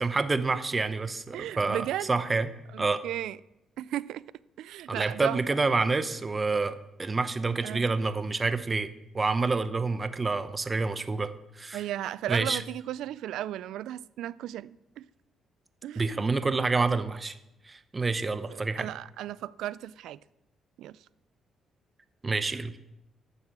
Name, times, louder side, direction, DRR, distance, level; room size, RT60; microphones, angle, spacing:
voice 1, 0.0-2.5 2.8-3.0 4.9-11.9 12.3-12.6 16.0-17.4 17.6-18.9 22.2-22.8, right 3 dB, 25° right, 0.7 m, -28 dB
voice 2, 1.3-2.2 2.7-3.4 3.8-4.2 4.6-5.4 7.6-7.8 11.7-15.0 15.8-16.2 18.5-20.2 20.8-21.0, right 13 dB, 85° right, 0.3 m, -35 dB
11.0 x 7.0 x 6.0 m
cardioid pair, 90°, 0 cm